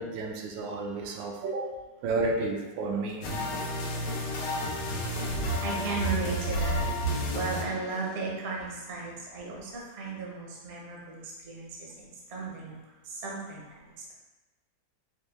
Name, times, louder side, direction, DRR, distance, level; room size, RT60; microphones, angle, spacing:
voice 1, 0.0-1.7 2.0-3.2, right 3 dB, 85° right, 1 dB, 1.3 m, -31 dB
sound 1, 3.2-8.5, left 1 dB, 75° left, 1.2 m, -33 dB
voice 2, 5.6-6.8 7.3-11.2 11.5-11.7 12.3-12.7 13.2-13.6, right 4 dB, 50° right, -3 dB, 0.8 m, -33 dB
4.4 x 2.2 x 3.3 m, 1.1 s
omnidirectional pair, 2.0 m